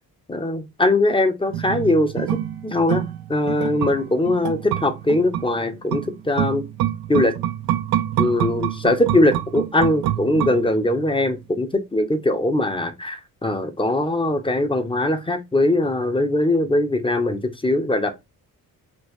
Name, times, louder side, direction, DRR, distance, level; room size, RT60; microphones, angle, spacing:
voice 1, 0.3-2.3 2.6-3.0 3.3-6.6 7.1-7.4 8.2-18.1, left 1 dB, 15° left, 0.8 m, -21 dB
sound 1, 1.5-11.1 11.4-11.5, right 12 dB, 70° right, 0.5 m, -27 dB
4.4 x 2.5 x 3.0 m
cardioid pair, 65°, 38 cm